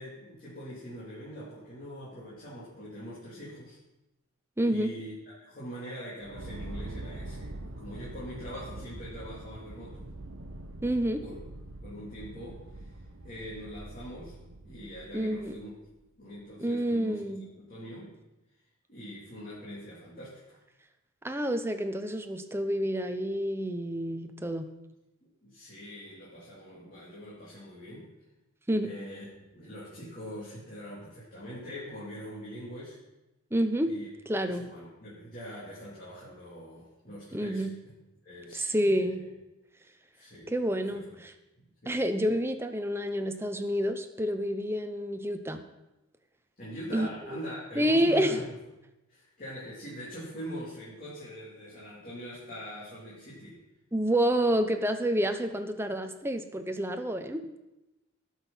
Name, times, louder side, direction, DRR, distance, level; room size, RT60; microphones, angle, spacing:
voice 1, 0.0-3.8 4.6-10.1 11.2-11.4 11.8-14.4 14.6-15.7 16.2-18.2 18.9-20.6 25.2-28.1 28.8-29.2 29.5-33.0 33.8-34.1 34.4-37.7 38.2-39.1 40.1-40.5 40.9-41.2 41.8-42.0 46.6-48.6 49.1-53.6, equal, 40° left, -8 dB, 3.2 m, -43 dB
voice 2, 4.6-4.9 10.8-11.2 15.1-15.6 16.6-17.4 21.2-24.6 28.7-28.9 33.5-33.9 34.3-34.6 37.3-37.7 38.5-39.3 40.5-41.3 41.9-45.6 46.9-47.4 47.8-48.4 53.9-57.4, equal, 10° right, 7 dB, 0.8 m, -28 dB
sound 1, 6.2-15.8, right 1 dB, 70° right, 1.0 m, -44 dB
18.0 x 6.5 x 5.6 m, 0.99 s
head